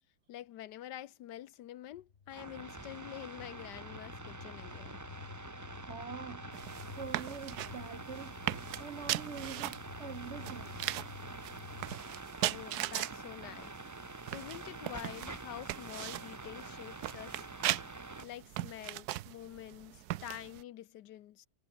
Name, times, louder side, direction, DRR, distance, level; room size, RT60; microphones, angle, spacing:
voice 1, 0.3-5.0 12.4-13.8 14.3-17.4 18.2-21.5, left 12 dB, 75° left, 1.3 m, -47 dB
sound 1, 1.9-12.0, left 6 dB, 40° left, 1.1 m, -51 dB
sound 2, 2.3-18.3, right 3 dB, 25° right, 0.3 m, -47 dB
voice 2, 5.9-6.4 7.0-8.4 8.8-10.7, right 6 dB, 50° right, 1.0 m, -44 dB
sound 3, 6.5-20.6, right 15 dB, 70° right, 1.0 m, -40 dB
omnidirectional pair, 1.9 m